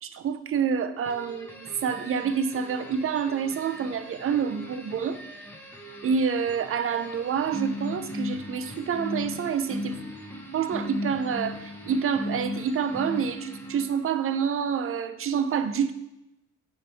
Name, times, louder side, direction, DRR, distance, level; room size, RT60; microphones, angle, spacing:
voice 1, 0.0-5.2 6.0-10.1 10.5-15.9, right 7 dB, 45° right, 10 dB, 0.5 m, -27 dB
sound 1, 1.0-14.2, left 1 dB, 5° left, 1.2 m, -38 dB
9.3 x 3.2 x 3.4 m, 0.91 s
cardioid pair, 90°, 30 cm